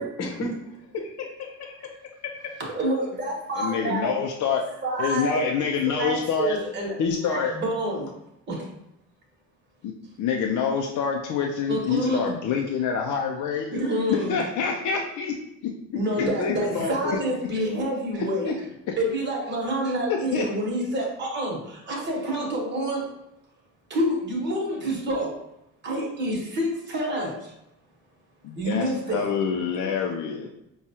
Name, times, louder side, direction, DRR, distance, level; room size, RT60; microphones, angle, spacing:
voice 1, 0.0-2.3 16.2-17.2, left 2 dB, 60° left, 1 dB, 0.9 m, -32 dB
voice 2, 2.6-4.1 4.8-5.4 5.8-6.9 7.3-8.1 8.5-8.7 11.7-12.2 13.7-14.4 15.9-18.5 19.0-23.1 23.9-25.4 25.8-27.5 28.6-29.3, right 1 dB, 35° right, -2 dB, 1.1 m, -28 dB
voice 3, 3.6-4.7 5.0-6.6 7.0-7.6 9.8-9.9 10.2-13.7 14.1-15.4 15.6-15.7 16.2-16.3 18.4-18.5 18.9-19.0 20.1-20.4 28.4-30.5, left 6 dB, 80° left, 1 dB, 0.5 m, -26 dB
4.7 x 2.3 x 2.8 m, 0.84 s
cardioid pair, 90°, 30 cm